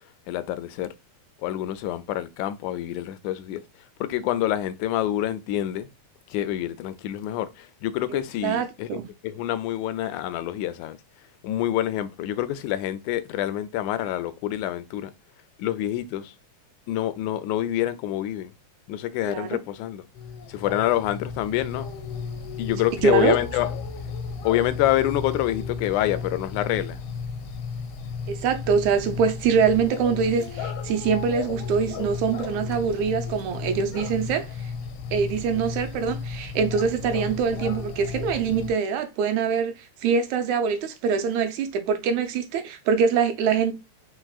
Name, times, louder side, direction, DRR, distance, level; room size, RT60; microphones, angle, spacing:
voice 1, 0.3-0.9 1.4-3.6 4.0-5.9 6.3-11.0 11.4-15.1 15.6-16.4 16.9-18.5 18.9-20.1 20.5-21.9 22.6-23.8 24.4-27.0, left 13 dB, 90° left, 2.0 m, -27 dB
voice 2, 8.1-9.0 19.3-19.6 23.0-23.4 28.3-34.7 35.1-43.7, right 6 dB, 80° right, 2.1 m, -24 dB
sound 1, 20.1-38.7, left 5 dB, 70° left, 1.7 m, -34 dB
4.6 x 4.5 x 2.3 m
omnidirectional pair, 3.4 m